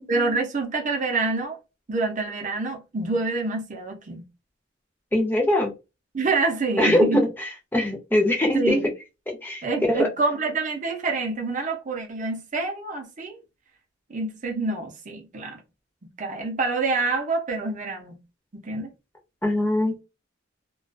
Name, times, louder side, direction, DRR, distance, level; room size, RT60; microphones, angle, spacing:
voice 1, 0.1-1.6 1.9-4.3 6.1-7.2 8.5-8.9 9.6-13.4 14.1-15.6 16.2-18.2 18.5-18.9, right 3 dB, 40° right, 0.6 m, -27 dB
voice 2, 5.1-5.7 6.8-8.8 9.4-10.1 19.4-20.0, left 1 dB, 10° left, 0.6 m, -22 dB
2.4 x 2.3 x 2.5 m
head